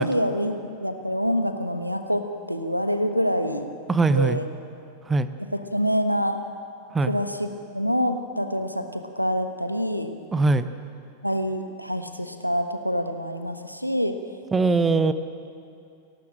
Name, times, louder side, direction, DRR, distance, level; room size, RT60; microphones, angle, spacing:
voice 1, 0.0-3.7 4.1-4.5 5.5-6.4 7.1-7.5 7.7-10.1 11.2-14.2, equal, 90° right, 8 dB, 1.2 m, -26 dB
voice 2, 3.9-4.4 5.1-5.3 6.9-7.1 10.3-10.7 14.5-15.1, right 3 dB, 15° right, 12 dB, 0.8 m, -21 dB
29.5 x 12.0 x 7.6 m, 2.5 s
figure-of-eight pair, 90°, 0 cm